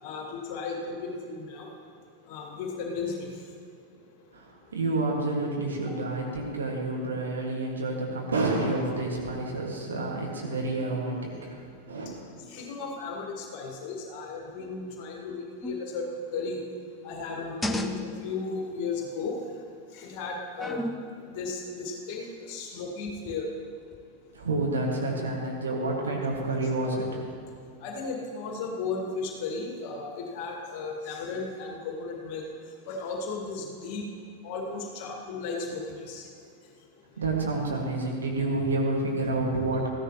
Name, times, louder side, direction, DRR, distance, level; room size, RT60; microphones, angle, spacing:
voice 1, 0.0-1.7 2.3-3.3 12.5-16.6 17.0-19.4 19.9-20.8 21.2-23.5 27.8-32.4 32.9-34.1 34.4-36.3, left 4 dB, 45° left, 0 dB, 1.9 m, -35 dB
voice 2, 4.3-12.1 24.3-27.3 37.2-39.9, right 2 dB, 70° right, -2 dB, 2.0 m, -29 dB
sound 1, 15.6-16.0 17.2-18.4 20.6-21.2 23.1-23.4 23.9-24.0, left 1 dB, 10° left, 0.6 m, -33 dB
14.5 x 10.0 x 3.1 m, 2.3 s
figure-of-eight pair, 90°, 0 cm